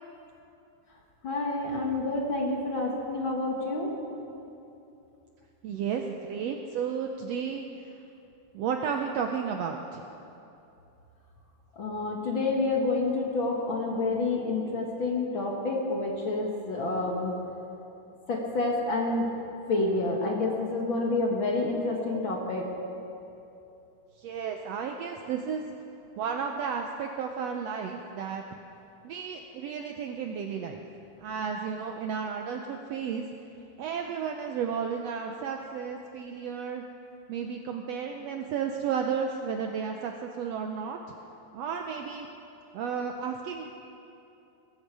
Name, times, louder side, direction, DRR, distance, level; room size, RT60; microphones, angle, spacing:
voice 1, 1.2-3.9 11.8-17.4 18.3-19.3 19.7-22.7, left 2 dB, 45° left, -1 dB, 2.1 m, -28 dB
voice 2, 5.6-7.9 8.5-10.0 24.2-25.6 26.2-28.4 29.0-30.8 31.2-33.3 33.8-36.8 37.3-41.0 41.5-42.3 42.7-43.7, right 6 dB, 75° right, 3 dB, 1.6 m, -33 dB
21.5 x 13.0 x 4.8 m, 2.8 s
omnidirectional pair, 3.6 m